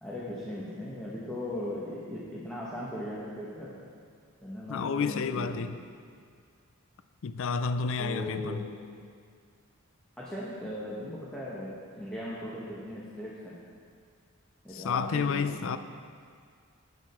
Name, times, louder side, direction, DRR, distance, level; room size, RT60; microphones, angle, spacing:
voice 1, 0.0-3.8 4.4-5.6 8.0-8.7 10.2-13.5 14.6-15.8, left 1 dB, 5° left, -8 dB, 1.2 m, -38 dB
voice 2, 4.7-5.8 7.2-8.7 14.7-15.8, left 5 dB, 60° left, 11 dB, 0.4 m, -30 dB
10.5 x 8.7 x 4.4 m, 2.1 s
head